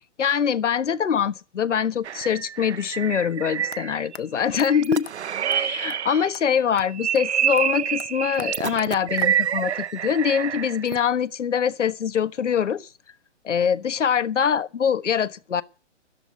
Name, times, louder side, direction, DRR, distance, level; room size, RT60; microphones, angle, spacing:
voice 1, 0.2-5.1 5.5-12.9 13.4-15.6, left 7 dB, 80° left, 1.4 m, -24 dB
sound 1, 2.0-4.2 4.5-6.4 6.8-11.0, right 9 dB, 65° right, 0.8 m, -27 dB
sound 2, 3.7-3.8 4.1-4.2 4.6-4.7 5.1-5.2 5.5-5.6 5.9-6.0 6.3-6.5 6.8-6.9 7.1-7.3 7.6-9.7, left 8 dB, 60° left, 1.0 m, -43 dB
13.5 x 10.5 x 9.5 m
hypercardioid pair, 175°, 35 cm